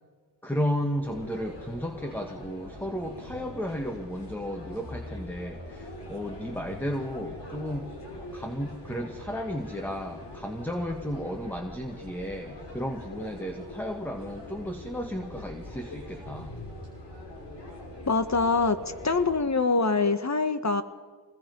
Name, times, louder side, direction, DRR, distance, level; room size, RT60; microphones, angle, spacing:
voice 1, 0.4-8.0 8.3-16.5, equal, 5° left, 4 dB, 1.8 m, -33 dB
sound 1, 1.0-19.4, left 1 dB, 80° left, 6.0 m, -43 dB
voice 2, 18.1-18.8 19.0-20.8, left 4 dB, 40° left, 10 dB, 1.7 m, -24 dB
26.0 x 20.5 x 5.5 m, 1.5 s
cardioid pair, 55°, 41 cm